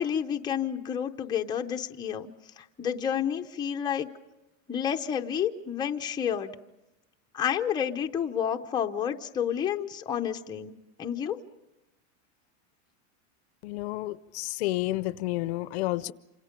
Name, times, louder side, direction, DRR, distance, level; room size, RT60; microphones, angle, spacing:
voice 1, 0.0-2.3 2.6-4.1 4.7-6.6 7.3-11.4, left 8 dB, 10° left, 3 dB, 0.8 m, -30 dB
voice 2, 13.6-16.1, left 18 dB, 55° left, 16 dB, 0.7 m, -30 dB
28.0 x 26.5 x 5.2 m, 0.96 s
supercardioid pair, 160°, 39 cm